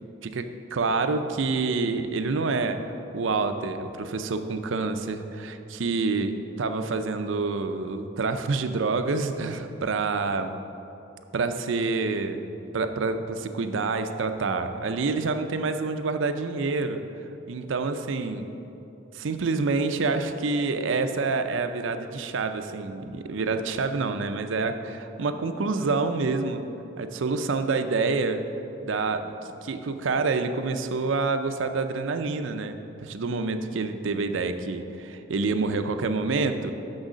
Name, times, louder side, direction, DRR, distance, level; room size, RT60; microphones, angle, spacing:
voice 1, 0.2-10.5 11.3-12.5 12.7-17.0 17.5-18.5 19.1-26.6 27.0-28.4 28.8-29.3 29.6-32.8 33.0-36.7, right 3 dB, 75° right, 8 dB, 0.5 m, -27 dB
6.3 x 6.3 x 6.2 m, 2.9 s
head